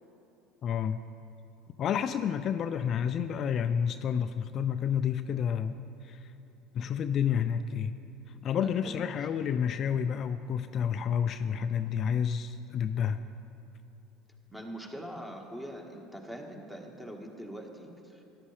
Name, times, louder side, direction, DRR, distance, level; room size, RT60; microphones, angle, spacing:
voice 1, 0.6-1.0 1.8-6.3 6.7-8.0 8.4-13.2, left 8 dB, 50° left, 10 dB, 0.3 m, -30 dB
voice 2, 8.3-9.1 14.5-18.4, equal, 5° right, 2 dB, 1.5 m, -43 dB
13.5 x 10.0 x 3.3 m, 2.8 s
hypercardioid pair, 75°, 0 cm